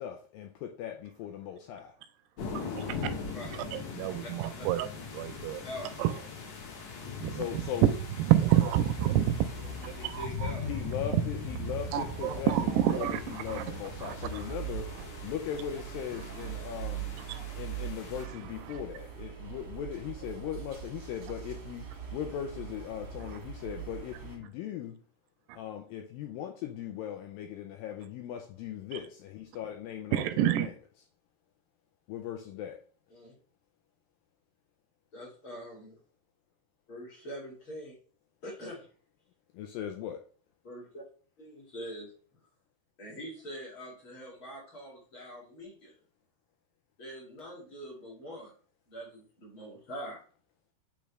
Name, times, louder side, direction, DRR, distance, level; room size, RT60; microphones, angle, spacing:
voice 1, 0.0-2.0 7.3-7.9 10.6-15.0 15.2-17.2 17.6-25.0 25.5-30.7 32.1-32.8 39.5-40.3, left 10 dB, 85° left, 2.1 m, -39 dB
sound 1, 2.4-18.2, left 5 dB, 55° left, 2.1 m, -41 dB
voice 2, 3.7-4.9 5.1-5.6 6.0-6.1 7.2-7.4 7.8-7.9 8.3-9.3 9.8-10.5 11.9-13.6 14.0-14.1 17.3-17.4 30.1-30.7, right 12 dB, 85° right, 2.6 m, -27 dB
voice 3, 5.6-6.0 9.8-10.7 33.1-33.4 35.1-36.0 36.9-38.0 38.4-38.9 40.6-41.0 41.4-42.1 43.0-45.9 47.0-48.5 48.9-50.2, equal, 40° left, 2.4 m, -44 dB
sound 2, 8.6-24.4, right 7 dB, 60° right, 1.4 m, -42 dB
8.4 x 3.5 x 3.2 m
omnidirectional pair, 4.7 m